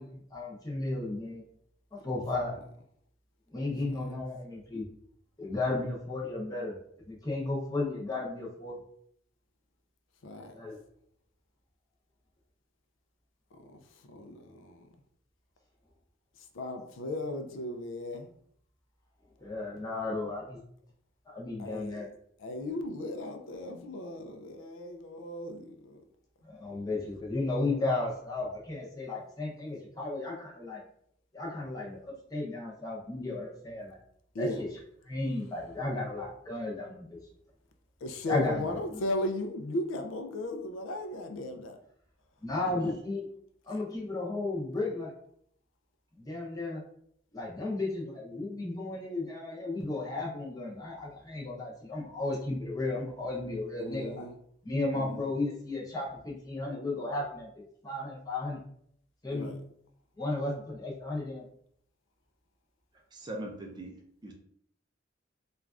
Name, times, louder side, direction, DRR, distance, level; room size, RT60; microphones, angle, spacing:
voice 1, 0.0-1.4 2.0-2.6 3.5-4.8 5.4-6.8 7.1-8.8 10.5-10.8 19.4-20.6 21.3-22.1 26.4-30.8 31.3-34.0 34.4-34.7 35.1-37.2 38.3-39.0 42.4-43.3 43.7-45.1 46.1-46.8 47.3-54.3 54.6-58.6 59.2-59.5 60.2-61.4, left 2 dB, 20° left, -4 dB, 0.7 m, -34 dB
voice 2, 10.2-10.6 13.5-14.9 16.4-18.3 21.6-22.1 22.4-26.0 34.3-34.6 38.0-41.8 53.8-54.4 54.9-55.2 59.3-59.6, left 1 dB, 90° left, 5 dB, 0.4 m, -36 dB
voice 3, 63.1-63.9 64.2-64.3, right 1 dB, 20° right, 1 dB, 0.4 m, -40 dB
3.2 x 2.3 x 2.4 m, 0.68 s
head